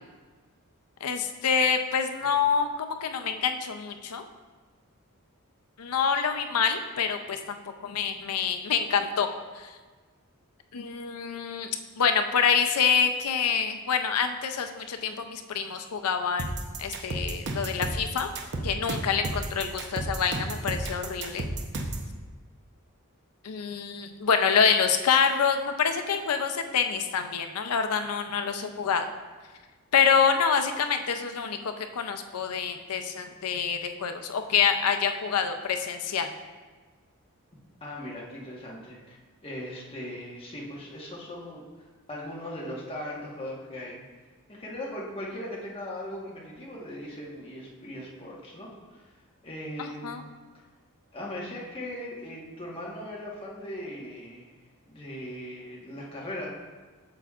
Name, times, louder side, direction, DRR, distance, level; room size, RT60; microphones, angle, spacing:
voice 1, 1.0-4.2 5.8-9.3 9.5-9.7 10.7-16.5 16.8-18.3 18.6-21.4 23.4-29.1 29.9-36.3 49.8-50.2, left 6 dB, 85° left, 7 dB, 0.5 m, -26 dB
sound 1, 16.4-22.1, right 2 dB, 55° right, 0.7 m, -32 dB
voice 2, 37.8-39.2 39.4-41.6 42.1-44.0 44.5-49.1 49.4-50.2 51.1-54.5 54.9-56.5, left 1 dB, 25° left, -5 dB, 1.3 m, -39 dB
7.8 x 7.0 x 2.4 m, 1.4 s
head